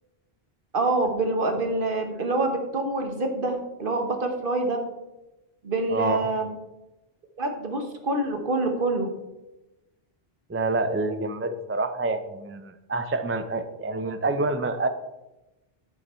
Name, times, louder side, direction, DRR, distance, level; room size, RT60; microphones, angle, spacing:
voice 1, 0.7-4.8 5.6-6.5 7.4-9.1, right 2 dB, 60° right, 4 dB, 1.4 m, -26 dB
voice 2, 5.9-6.3 10.5-14.9, right 3 dB, 20° right, 10 dB, 0.3 m, -27 dB
9.7 x 7.0 x 4.4 m, 1.0 s
omnidirectional pair, 1.0 m